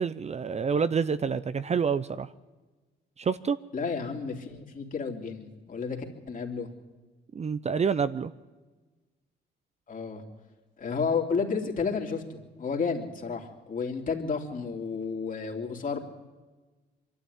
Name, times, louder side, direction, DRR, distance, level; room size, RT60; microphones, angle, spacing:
voice 1, 0.0-2.3 3.2-3.6 7.3-8.3, right 6 dB, 35° right, 0.6 m, -27 dB
voice 2, 3.7-6.0 6.3-6.7 9.9-10.2 10.8-16.0, left 5 dB, 45° left, 3.1 m, -31 dB
23.5 x 12.5 x 9.6 m
cardioid pair, 90°, 20 cm